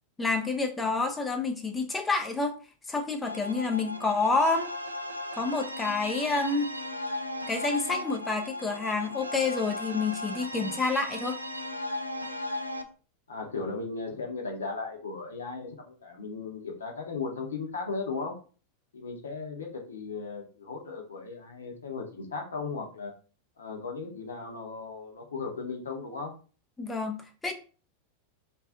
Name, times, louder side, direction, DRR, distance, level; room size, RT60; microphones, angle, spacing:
voice 1, 0.2-2.6 2.9-4.7 5.4-6.7 7.5-11.4 26.8-27.5, left 3 dB, 10° left, 4 dB, 0.4 m, -28 dB
sound 1, 3.2-12.8, left 1 dB, 85° right, 0.3 m, -36 dB
voice 2, 13.3-18.3 18.9-23.1 23.6-26.3, left 4 dB, 70° left, 2 dB, 0.7 m, -36 dB
2.5 x 2.3 x 3.5 m, 0.38 s
figure-of-eight pair, 90°, 0 cm